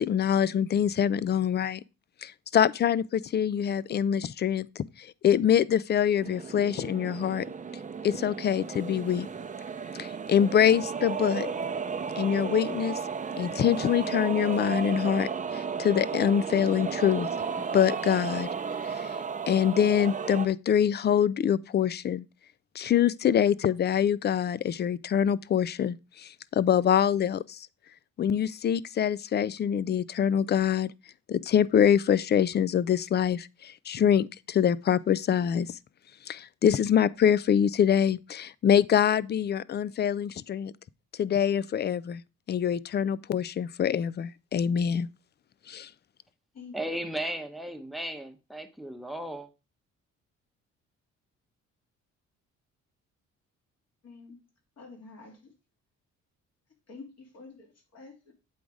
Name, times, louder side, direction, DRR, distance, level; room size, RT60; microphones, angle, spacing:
voice 1, 0.0-1.8 2.2-7.5 8.0-9.3 10.0-11.5 12.2-13.0 13.4-17.3 17.7-18.5 18.8-19.1 19.5-22.2 22.8-27.7 28.2-30.9 31.3-35.7 36.3-40.7 41.2-42.2 42.5-45.1 45.7-45.9, left 9 dB, 35° left, 0.4 m, -25 dB
sound 1, 6.2-20.5, right 6 dB, 25° right, 0.7 m, -34 dB
voice 2, 46.7-49.5, right 1 dB, ahead, 1.0 m, -35 dB
voice 3, 54.0-54.4 54.8-55.5 56.9-58.3, left 4 dB, 55° left, 2.9 m, -48 dB
8.3 x 3.9 x 4.7 m
cardioid pair, 90°, 30 cm